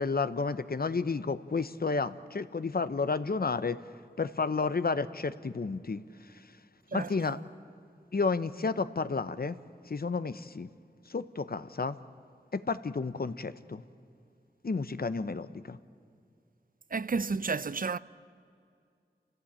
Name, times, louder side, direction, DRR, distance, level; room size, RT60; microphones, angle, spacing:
voice 1, 0.0-3.8 4.2-6.0 6.9-7.4 8.1-9.6 9.9-10.7 11.1-12.0 12.5-13.8 14.6-15.8, left 4 dB, 60° left, 0.9 m, -31 dB
voice 2, 6.9-7.3 16.9-18.0, right 4 dB, 55° right, 0.5 m, -32 dB
29.0 x 16.0 x 8.8 m
wide cardioid pair, 50°, 18 cm